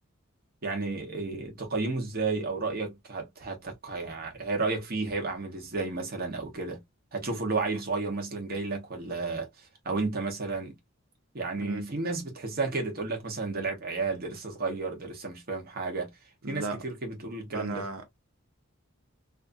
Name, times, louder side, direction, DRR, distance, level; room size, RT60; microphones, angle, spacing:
voice 1, 0.6-6.8 7.1-9.5 9.8-10.8 11.3-16.1 16.5-17.9, right 3 dB, 45° right, 1.0 m, -32 dB
voice 2, 16.4-16.8 17.5-18.1, right 2 dB, 75° right, 1.0 m, -36 dB
2.8 x 2.5 x 2.5 m
head